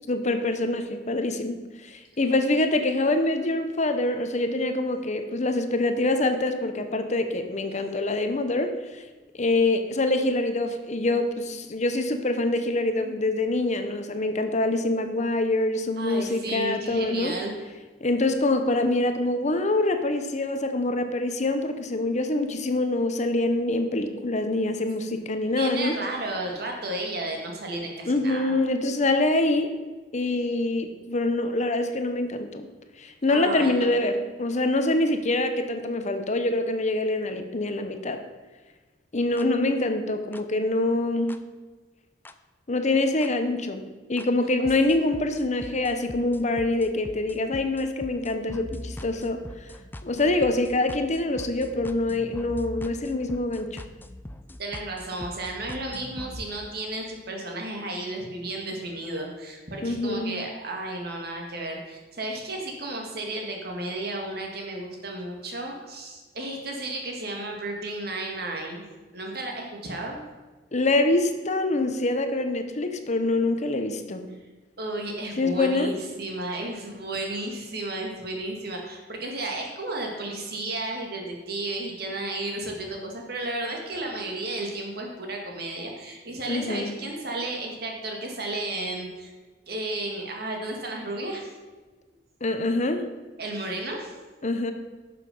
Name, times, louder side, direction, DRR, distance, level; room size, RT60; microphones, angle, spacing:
voice 1, 0.1-9.0 9.3-17.3 18.0-26.0 28.0-29.7 30.1-32.7 33.0-38.2 39.1-41.4 42.7-43.8 44.1-49.7 50.0-53.8 59.8-60.4 70.7-74.3 75.4-75.9 86.5-86.9 92.4-93.1 94.4-94.7, left 2 dB, 40° left, 8 dB, 0.9 m, -25 dB
voice 2, 16.0-17.5 25.4-28.5 33.3-34.0 54.6-68.8 69.1-70.2 74.8-89.3 89.7-91.5 93.4-94.1, right 2 dB, 60° right, 1 dB, 2.1 m, -33 dB
sound 1, 39.4-39.5 40.3-40.4 41.3-41.4 42.3-42.4 43.2-43.3 44.2-44.3 44.7-56.5, left 1 dB, 10° left, 0.4 m, -41 dB
11.5 x 6.8 x 5.4 m, 1.3 s
head